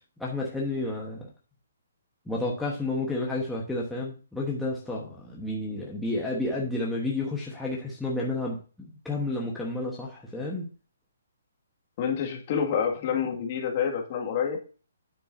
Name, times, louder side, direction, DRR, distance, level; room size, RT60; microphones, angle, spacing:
voice 1, 0.2-1.3 2.3-10.7, left 2 dB, 5° left, -4 dB, 1.2 m, -31 dB
voice 2, 12.0-14.6, left 7 dB, 35° left, 1 dB, 1.9 m, -28 dB
8.8 x 8.6 x 2.6 m, 0.35 s
hypercardioid pair, 165°, 0 cm